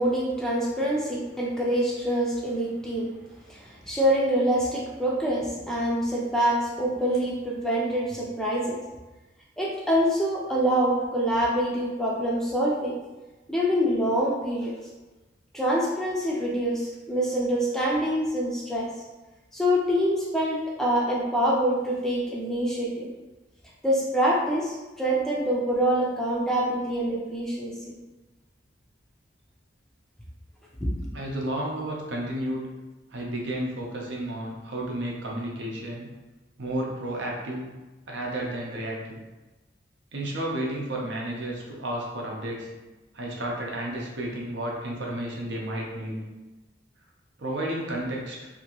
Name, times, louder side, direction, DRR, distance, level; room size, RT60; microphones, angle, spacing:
voice 1, 0.0-3.1 3.5-8.8 9.6-13.0 13.5-14.7 15.5-18.9 19.5-23.1 23.8-27.7 30.8-30.9, equal, 5° left, -5 dB, 0.4 m, -25 dB
voice 2, 31.1-32.7 33.1-36.1 36.6-37.7 38.1-39.2 40.1-42.7 43.1-46.2 47.4-48.5, right 1 dB, 75° right, -2 dB, 0.7 m, -32 dB
2.9 x 2.5 x 2.9 m, 1.1 s
head